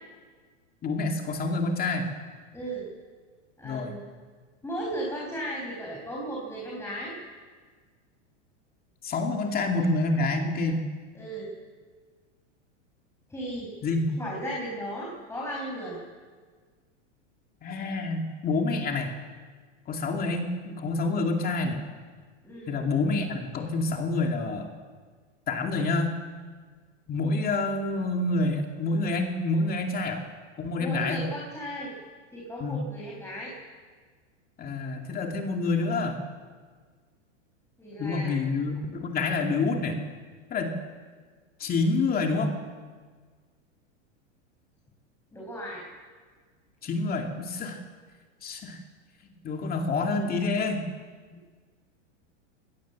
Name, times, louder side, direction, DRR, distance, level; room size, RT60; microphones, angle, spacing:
voice 1, 0.8-2.1 3.6-3.9 9.0-10.9 13.8-14.1 17.6-19.1 19.9-21.8 22.7-24.7 25.5-26.1 27.1-30.2 30.6-31.2 32.6-32.8 34.6-36.2 38.0-40.0 40.5-40.7 41.6-42.5 46.8-47.8 48.4-48.8 49.2-50.9, left 3 dB, 25° left, 2 dB, 2.5 m, -27 dB
voice 2, 2.5-2.8 3.6-4.1 4.6-7.1 9.8-9.9 11.1-11.5 13.3-13.7 14.2-16.0 22.4-22.8 30.8-31.9 32.3-33.5 37.8-38.4 45.3-45.8, right 1 dB, 5° left, -3 dB, 5.4 m, -35 dB
23.5 x 18.0 x 7.4 m, 1.5 s
supercardioid pair, 140°, 37 cm